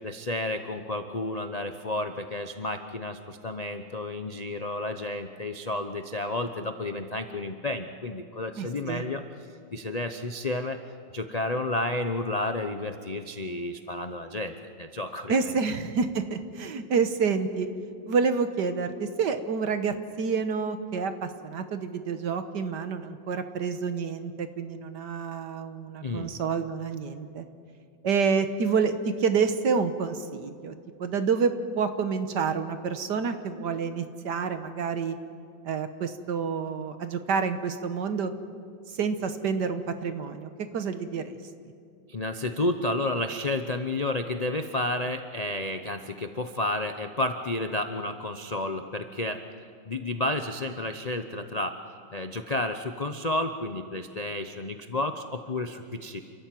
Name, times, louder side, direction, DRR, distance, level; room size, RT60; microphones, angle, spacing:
voice 1, 0.0-9.2 9.7-10.8 11.1-15.6 26.0-26.4 42.1-49.4 49.9-51.8 52.1-56.2, left 2 dB, 40° left, 7 dB, 0.5 m, -31 dB
voice 2, 8.6-9.1 15.3-17.7 18.1-27.5 28.0-35.2 35.6-38.3 38.9-41.4, right 5 dB, 60° right, 9 dB, 1.7 m, -28 dB
29.0 x 14.0 x 9.1 m, 2.4 s
omnidirectional pair, 2.1 m